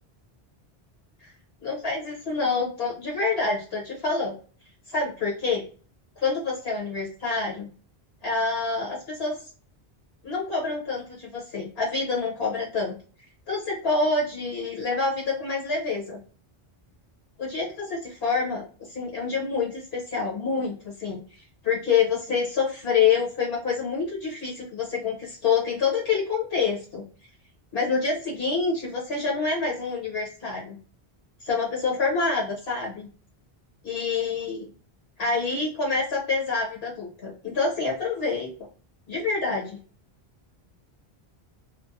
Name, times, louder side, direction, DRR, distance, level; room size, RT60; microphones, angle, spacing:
voice 1, 1.6-4.3 4.9-5.6 6.2-7.7 8.2-9.4 10.2-12.9 13.5-16.2 17.4-21.2 21.6-27.0 27.7-30.8 31.4-33.1 33.8-34.7 35.2-38.7 39.1-39.8, left 4 dB, 75° left, -3 dB, 1.3 m, -27 dB
3.3 x 2.1 x 2.5 m, 0.39 s
omnidirectional pair, 1.0 m